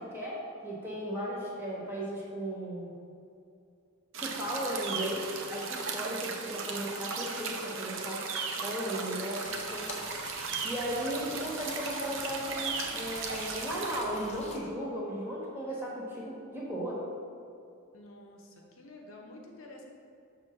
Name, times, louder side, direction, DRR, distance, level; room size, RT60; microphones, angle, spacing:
voice 1, 0.0-2.9 4.2-8.3 8.6-9.9 10.6-17.0, equal, 10° right, -6 dB, 1.3 m, -36 dB
sound 1, 4.1-14.0, right 5 dB, 60° right, 0.6 m, -37 dB
sound 2, 9.4-14.6, left 3 dB, 30° left, 0.5 m, -46 dB
voice 2, 17.9-19.8, left 1 dB, 65° left, 0 dB, 0.8 m, -50 dB
6.6 x 3.1 x 5.8 m, 2.5 s
head